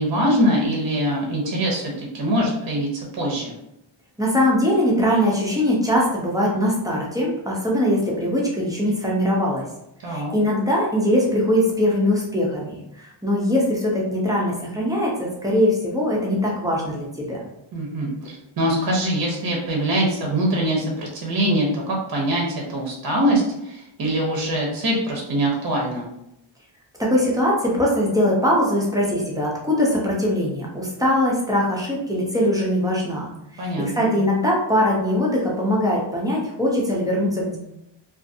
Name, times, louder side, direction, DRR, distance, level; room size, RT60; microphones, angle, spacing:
voice 1, 0.0-3.5 10.0-10.3 17.7-26.1 33.6-34.1, right 1 dB, 45° right, -1 dB, 0.7 m, -23 dB
voice 2, 4.2-9.7 10.0-17.4 27.0-37.6, equal, 10° right, -4 dB, 0.5 m, -21 dB
2.5 x 2.5 x 2.5 m, 0.83 s
wide cardioid pair, 155°, 50 cm